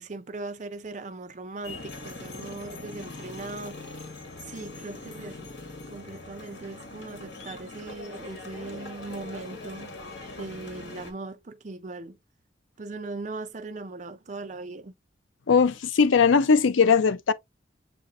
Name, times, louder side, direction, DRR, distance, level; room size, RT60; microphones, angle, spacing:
voice 1, 0.0-4.1 4.4-5.5 5.9-9.9 10.4-12.2 12.8-14.9, right 3 dB, 40° right, 0.5 m, -39 dB
sound 1, 1.6-11.1, left 2 dB, 65° left, 1.5 m, -41 dB
voice 2, 15.5-17.3, left 5 dB, 90° left, 0.5 m, -19 dB
7.4 x 2.5 x 2.5 m
head